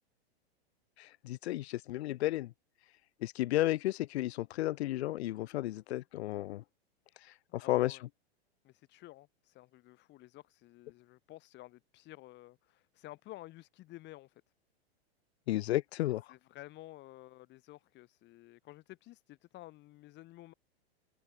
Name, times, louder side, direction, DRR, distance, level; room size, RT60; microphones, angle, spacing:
voice 1, 1.0-2.5 3.2-6.6 7.5-8.0 15.5-16.3, left 16 dB, 80° left, 0.5 m, -33 dB
voice 2, 7.2-8.0 8.6-14.4 16.3-20.5, left 17 dB, 35° left, 2.2 m, -52 dB
hypercardioid pair, 130°, 32 cm